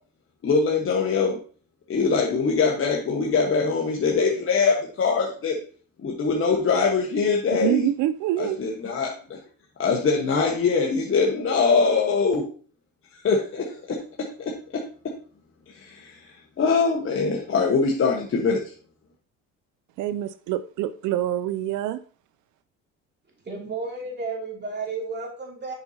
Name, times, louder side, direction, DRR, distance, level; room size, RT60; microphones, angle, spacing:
voice 1, 0.4-1.4 1.9-5.5 6.0-7.9 8.4-9.4 9.8-12.4 13.2-15.1 15.7-18.6, left 4 dB, 35° left, 1.3 m, -23 dB
voice 2, 7.5-8.6 20.0-22.0, right 13 dB, 60° right, 0.5 m, -26 dB
voice 3, 23.4-25.7, right 3 dB, 30° right, 2.8 m, -32 dB
7.9 x 5.4 x 2.8 m
supercardioid pair, 85°, 35 cm